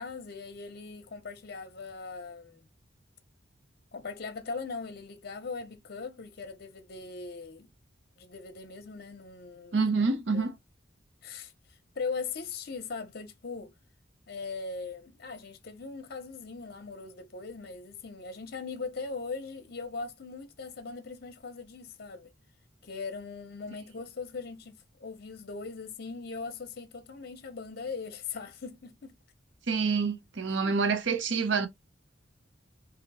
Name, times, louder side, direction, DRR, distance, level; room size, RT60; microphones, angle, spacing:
voice 1, 0.0-2.7 3.9-7.7 8.2-9.9 10.3-10.5 11.2-11.5 11.9-13.7 14.3-22.3 22.8-29.1 30.5-30.8, left 4 dB, 55° left, 0.7 m, -40 dB
voice 2, 9.7-10.6 29.7-31.7, right 4 dB, 70° right, 0.6 m, -27 dB
2.8 x 2.8 x 4.0 m
head